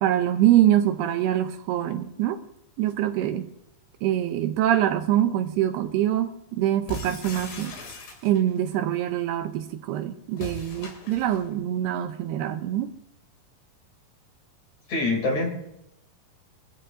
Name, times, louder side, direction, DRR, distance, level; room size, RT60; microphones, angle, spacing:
voice 1, 0.0-2.4 2.8-3.5 4.0-7.8 8.2-12.9, right 12 dB, 80° right, 2.6 m, -24 dB
sound 1, 6.9-8.6 10.3-11.5, left 2 dB, 80° left, 5.1 m, -39 dB
voice 2, 14.9-15.5, left 2 dB, 45° left, 3.9 m, -24 dB
24.5 x 14.0 x 2.7 m
omnidirectional pair, 4.9 m